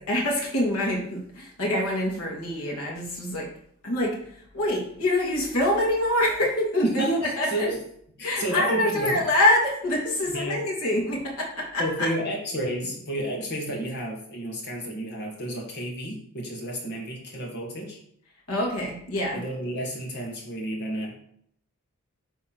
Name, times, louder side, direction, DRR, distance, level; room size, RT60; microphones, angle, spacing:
voice 1, 0.1-3.5 3.8-7.1 7.4-7.7 8.2-12.1 18.5-19.4, left 1 dB, 90° left, -2 dB, 2.7 m, -25 dB
voice 2, 6.8-7.8 8.2-9.2 10.3-10.6 11.8-18.0 19.3-21.2, right 1 dB, 50° left, -1 dB, 1.9 m, -31 dB
8.2 x 3.7 x 6.1 m, 0.69 s
head